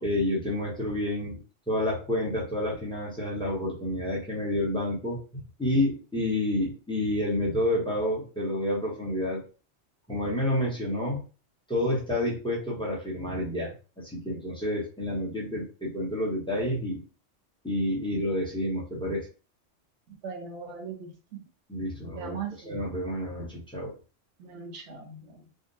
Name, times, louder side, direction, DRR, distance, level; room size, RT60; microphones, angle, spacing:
voice 1, 0.0-1.4 1.7-9.4 10.1-11.2 11.7-17.0 17.6-19.3 21.7-23.9, left 1 dB, 5° left, -4 dB, 0.8 m, -29 dB
voice 2, 20.2-21.1 22.2-22.8 24.4-25.3, right 5 dB, 70° right, 2 dB, 1.1 m, -39 dB
3.6 x 2.1 x 2.6 m, 0.34 s
omnidirectional pair, 1.3 m